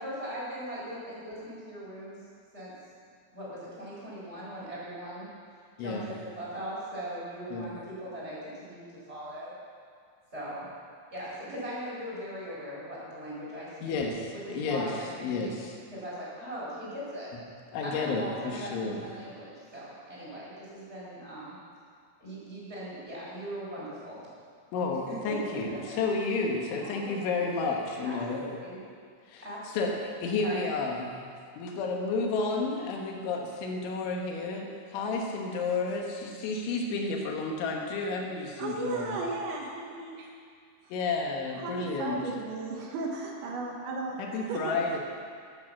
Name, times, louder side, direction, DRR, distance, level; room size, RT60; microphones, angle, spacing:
voice 1, 0.0-2.2 2.5-2.7 3.3-5.3 5.8-9.5 10.3-10.7 11.1-15.5 15.9-17.3 17.8-18.7 19.0-21.5 22.2-24.2 25.1-26.0 26.8-28.8 29.4-30.0 30.4-30.6, equal, 15° right, -7 dB, 4.2 m, -40 dB
voice 2, 5.8-6.1 7.5-7.7 13.8-14.9 15.2-15.7 17.7-19.0 24.7-28.4 29.3-29.9 30.2-31.2 31.6-39.2 40.9-42.2 44.2-45.0, left 3 dB, 80° left, 0 dB, 3.8 m, -31 dB
voice 3, 38.6-40.3 41.6-44.2 44.5-44.8, right 3 dB, 75° right, -1 dB, 3.7 m, -35 dB
13.0 x 9.1 x 7.4 m, 2.1 s
omnidirectional pair, 5.4 m